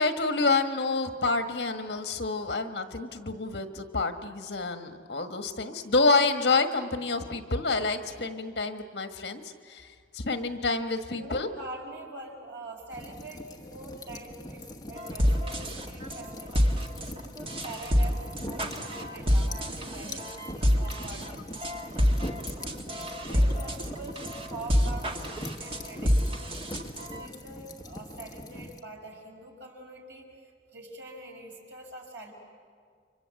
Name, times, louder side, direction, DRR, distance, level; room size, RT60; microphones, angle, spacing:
voice 1, 0.0-9.4 9.7-9.9 10.1-11.5, left 3 dB, 65° left, 7 dB, 1.6 m, -28 dB
voice 2, 11.0-17.2 17.6-22.5 22.7-26.5 26.9-32.3, right 2 dB, 90° right, 0 dB, 5.3 m, -45 dB
sound 1, 12.9-28.8, left 1 dB, 20° left, 1.2 m, -42 dB
sound 2, 15.0-27.3, equal, 30° right, 1.7 m, -28 dB
29.5 x 25.0 x 7.8 m, 2.1 s
head